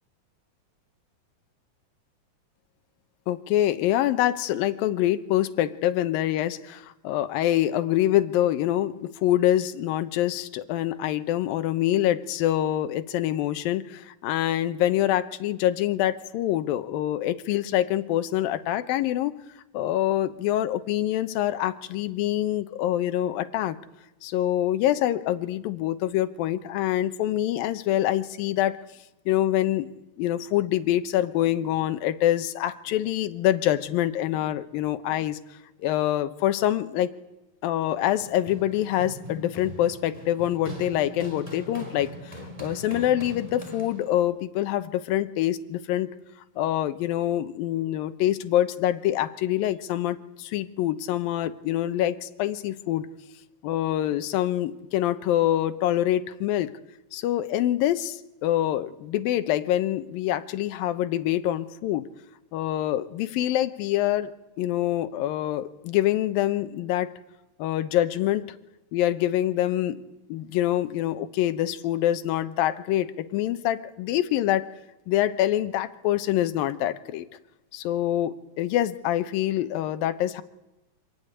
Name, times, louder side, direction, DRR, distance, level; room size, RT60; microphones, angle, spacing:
voice 1, 3.3-19.4 19.7-23.8 24.2-28.8 29.3-29.9 30.2-35.4 35.8-37.1 37.6-42.3 42.6-46.1 46.6-53.1 53.6-56.7 57.1-62.1 62.5-67.1 67.6-68.4 68.9-70.0 70.3-74.7 75.1-77.3 77.7-80.4, left 13 dB, 80° left, 10 dB, 2.8 m, -25 dB
Run, 37.9-44.3, right 1 dB, 10° right, 3.1 m, -41 dB
25.0 x 15.0 x 10.0 m, 1.0 s
omnidirectional pair, 4.2 m